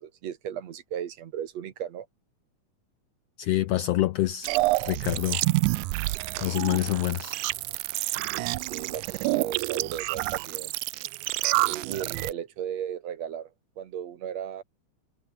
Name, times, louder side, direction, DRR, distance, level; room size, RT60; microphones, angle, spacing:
voice 1, 0.0-2.1 8.3-10.7 11.6-13.5 13.8-14.6, right 9 dB, 65° right, 2.5 m, -36 dB
voice 2, 3.4-4.5 4.8-5.4 6.4-7.4, left 15 dB, 75° left, 1.5 m, -26 dB
sound 1, 4.4-12.3, right 20 dB, 85° right, 2.1 m, -28 dB
omnidirectional pair, 3.5 m